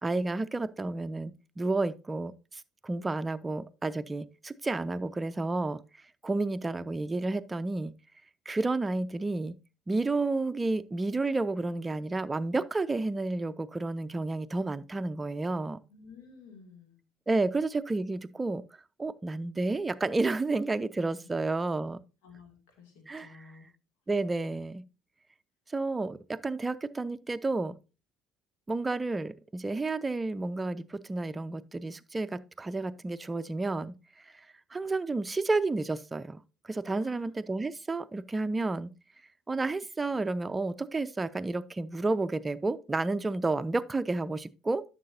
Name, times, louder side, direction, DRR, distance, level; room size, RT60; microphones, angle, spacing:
voice 1, 0.0-5.8 6.2-7.9 8.5-9.5 9.9-15.8 17.3-18.6 19.0-22.0 23.1-23.3 24.1-24.8 25.7-27.7 28.7-33.9 34.2-34.5 34.7-36.4 36.6-38.9 39.5-44.8, right 3 dB, 20° right, 0.5 m, -31 dB
voice 2, 15.9-17.0 21.2-21.3 22.2-23.7 36.9-37.3, left 5 dB, 70° left, 2.4 m, -53 dB
11.0 x 6.7 x 2.7 m
figure-of-eight pair, 55°, 0 cm